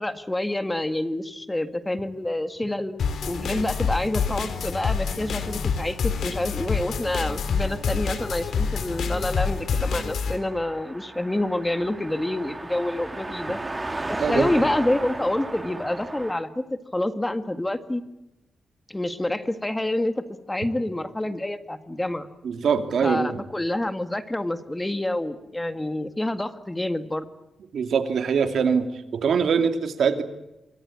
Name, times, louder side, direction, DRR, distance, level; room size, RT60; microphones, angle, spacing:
voice 1, 0.0-3.0 3.3-13.6 14.1-16.6 16.9-18.0 18.9-22.3 23.0-27.2, left 1 dB, 15° left, 10 dB, 1.9 m, -27 dB
sound 1, 3.0-10.4, left 5 dB, 80° left, 3.6 m, -27 dB
Car passing by, 6.2-16.3, right 2 dB, 20° right, 2.5 m, -36 dB
voice 2, 14.2-14.5 22.4-23.4 27.7-30.2, right 6 dB, 75° right, 8 dB, 2.8 m, -23 dB
27.0 x 24.0 x 8.6 m, 0.95 s
cardioid pair, 105°, 0 cm